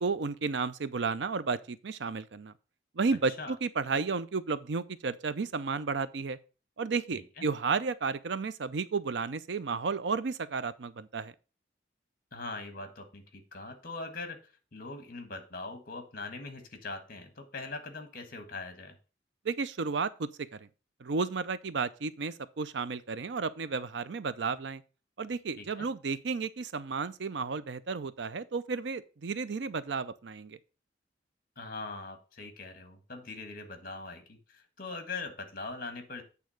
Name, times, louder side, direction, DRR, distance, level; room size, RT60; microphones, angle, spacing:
voice 1, 0.0-2.5 3.0-6.4 6.8-11.3 19.4-20.7 21.0-24.8 25.2-30.6, right 4 dB, 75° right, 0.5 m, -32 dB
voice 2, 7.1-7.4 12.3-14.4 14.7-18.9 25.6-25.9 31.6-36.2, left 3 dB, 50° left, 1.5 m, -41 dB
8.5 x 3.5 x 6.4 m
head